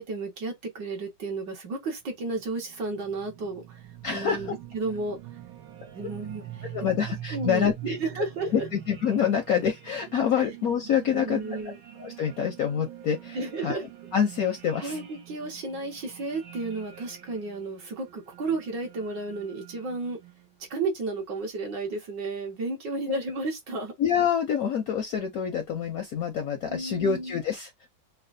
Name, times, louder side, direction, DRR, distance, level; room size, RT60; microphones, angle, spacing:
voice 1, 0.0-5.2 5.9-6.7 7.3-8.7 11.1-11.8 13.3-13.8 14.8-20.2 20.7-23.9 26.7-27.4, right 3 dB, 65° right, 2.0 m, -33 dB
sound 1, 2.2-20.5, right 12 dB, 90° right, 1.7 m, -45 dB
voice 2, 4.0-4.5 6.7-8.0 8.5-11.4 12.0-13.8 14.1-15.0 23.1-23.2 24.0-27.7, left 8 dB, 70° left, 0.9 m, -26 dB
5.7 x 2.3 x 2.6 m
omnidirectional pair, 2.1 m